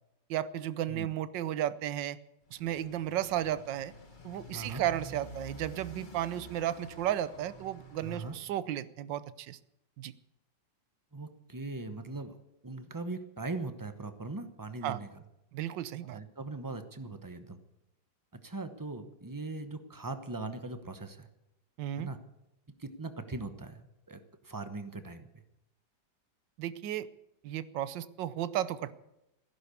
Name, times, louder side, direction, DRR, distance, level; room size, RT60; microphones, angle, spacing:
voice 1, 0.3-2.2 2.5-3.9 4.2-9.6 10.0-10.1 14.8-15.0 15.5-16.2 21.8-22.1 26.6-27.1 27.4-28.9, right 11 dB, 75° right, 16 dB, 1.4 m, -34 dB
Motorcycle, 2.4-8.4, right 2 dB, 25° left, 1.6 m, -49 dB
voice 2, 4.5-4.8 8.0-8.3 11.1-12.4 12.6-15.1 16.1-17.6 18.4-21.3 22.0-22.2 22.8-25.3, right 3 dB, 20° right, 9 dB, 0.5 m, -40 dB
15.5 x 11.0 x 8.4 m, 0.89 s
omnidirectional pair, 2.0 m